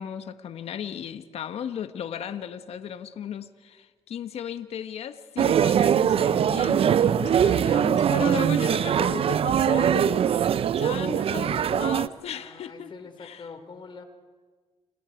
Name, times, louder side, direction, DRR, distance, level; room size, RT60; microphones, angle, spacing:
voice 1, 0.0-12.9 13.2-13.5, left 8 dB, 65° left, 10 dB, 1.5 m, -36 dB
sound 1, 5.4-12.1, right 9 dB, 55° right, 0.8 m, -22 dB
voice 2, 7.0-7.4 12.3-14.0, left 4 dB, 45° left, 6 dB, 4.7 m, -45 dB
30.0 x 29.5 x 4.7 m, 1.4 s
hypercardioid pair, 50°, 11 cm